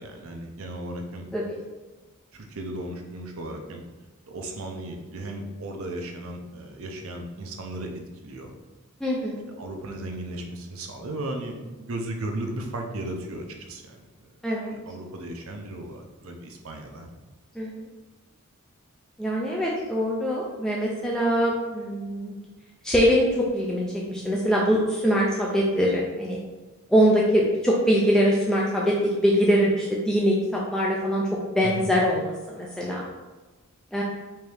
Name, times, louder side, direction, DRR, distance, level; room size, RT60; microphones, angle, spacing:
voice 1, 0.0-1.3 2.3-3.8 4.3-7.9 8.2-8.5 9.6-14.0 14.7-17.1 31.6-31.9, right 1 dB, 70° right, 3 dB, 0.6 m, -35 dB
voice 2, 9.0-9.4 14.4-14.7 17.6-17.7 19.2-22.3 22.8-26.4 26.9-31.2 31.6-32.2 32.5-33.0 33.9-34.0, equal, 5° left, -4 dB, 0.4 m, -23 dB
4.5 x 2.7 x 3.3 m, 1.2 s
head